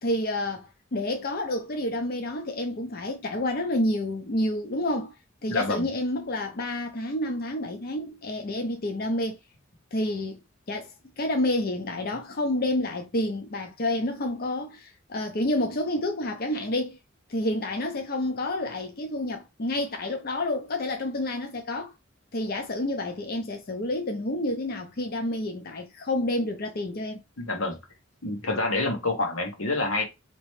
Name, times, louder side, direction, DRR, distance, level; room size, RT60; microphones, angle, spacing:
voice 1, 0.0-5.2 5.4-9.4 9.9-10.4 10.7-17.0 17.3-21.9 22.3-27.2, left 1 dB, 50° left, 0.6 m, -29 dB
voice 2, 5.5-5.9 27.4-27.8 28.2-30.0, left 2 dB, 85° left, 1.2 m, -27 dB
4.2 x 3.0 x 3.2 m
head